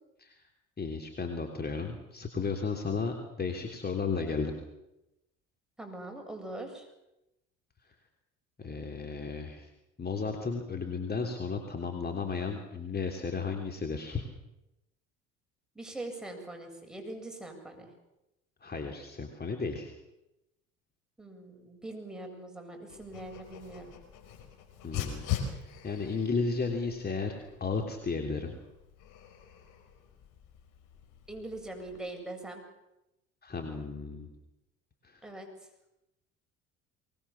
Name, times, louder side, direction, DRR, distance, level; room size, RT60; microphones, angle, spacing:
voice 1, 0.8-4.5 8.6-9.7 10.0-14.3 18.6-19.9 24.8-28.6 33.4-34.3 35.0-35.2, left 4 dB, 30° left, 4 dB, 3.3 m, -34 dB
voice 2, 5.8-6.9 15.7-17.9 21.2-23.9 31.3-32.6 35.2-35.5, right 2 dB, ahead, 2 dB, 7.7 m, -42 dB
Dog, 22.9-32.0, left 8 dB, 65° left, 5.3 m, -42 dB
23.5 x 20.0 x 7.3 m, 0.91 s
supercardioid pair, 75°, 34 cm